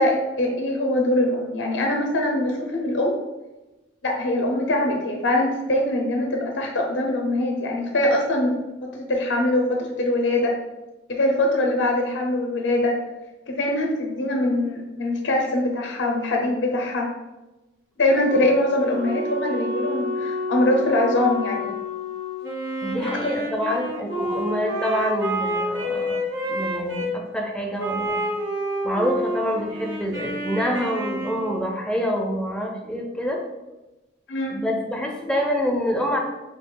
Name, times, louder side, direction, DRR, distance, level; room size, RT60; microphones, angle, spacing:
voice 1, 0.0-3.2 4.0-8.5 8.8-10.5 11.1-13.0 13.5-17.1 18.0-21.7 23.2-23.3 23.7-23.8 24.1-24.4 34.3-34.6, left 1 dB, 65° left, 1 dB, 0.5 m, -23 dB
Wind instrument woodwind instrument, 18.2-22.5, left 2 dB, 55° right, 0.7 m, -30 dB
Wind instrument woodwind instrument 2, 22.4-27.1 27.8-31.7, equal, 80° right, 1.4 m, -29 dB
voice 2, 22.8-28.2 28.8-33.4 34.5-36.2, equal, 5° left, 0 dB, 0.4 m, -26 dB
2.9 x 2.3 x 3.6 m, 1.0 s
head